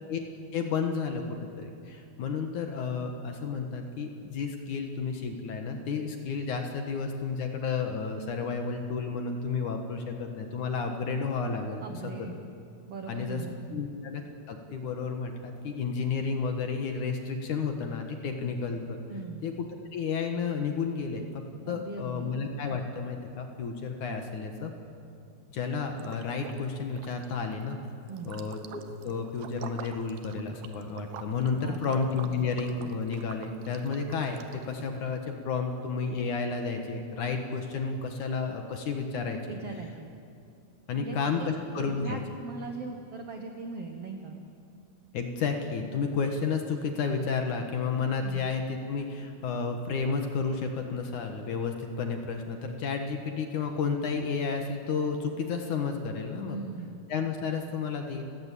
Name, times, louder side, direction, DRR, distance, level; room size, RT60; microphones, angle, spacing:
voice 1, 0.5-11.8 13.1-13.4 13.7-14.2 14.5-19.0 19.4-24.7 25.5-27.8 28.3-39.4 40.9-42.2 45.1-56.6 57.1-58.3, left 5 dB, 60° left, 4 dB, 2.4 m, -31 dB
voice 2, 11.8-12.4 12.9-13.9 19.1-19.4 21.6-22.3 28.1-28.3 31.5-31.9 39.4-40.1 40.9-44.4 48.2-48.5 56.4-57.0, right 4 dB, 85° right, 4 dB, 1.3 m, -40 dB
Liquid, 26.0-26.6 26.9-34.9, right 9 dB, 70° right, 2.5 m, -47 dB
30.0 x 17.0 x 8.4 m, 2.5 s
omnidirectional pair, 5.0 m